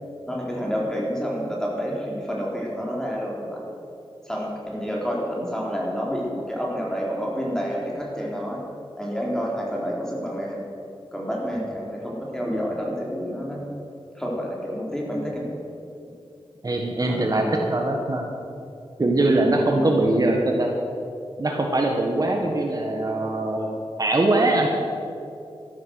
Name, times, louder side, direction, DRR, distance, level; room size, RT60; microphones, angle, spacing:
voice 1, 0.3-3.6 4.2-8.6 9.0-10.7 11.1-13.6 14.1-15.4 17.1-17.6 19.7-20.0, equal, 5° left, -3 dB, 4.3 m, -29 dB
voice 2, 16.6-18.3 19.0-20.7 21.4-23.7 24.0-24.7, right 2 dB, 40° right, 1 dB, 1.5 m, -22 dB
13.5 x 13.0 x 6.4 m, 2.7 s
wide cardioid pair, 85°, 10 cm